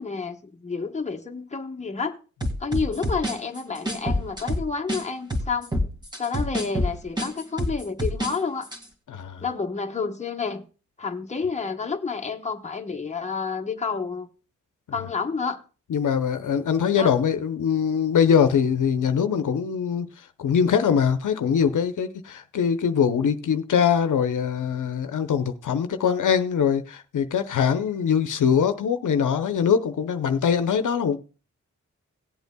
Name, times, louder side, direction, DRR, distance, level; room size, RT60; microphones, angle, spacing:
voice 1, 0.0-2.2 2.6-5.7 6.2-8.7 9.4-10.6 11.0-14.3 14.9-15.6 16.9-17.1, left 5 dB, 20° left, 1.1 m, -29 dB
sound 1, 2.4-5.0 5.3-8.3 8.6-8.8, equal, 15° right, 2.0 m, -27 dB
voice 2, 9.1-9.4 15.9-31.2, left 7 dB, 80° left, 0.8 m, -22 dB
17.5 x 8.1 x 2.2 m
cardioid pair, 80°, 31 cm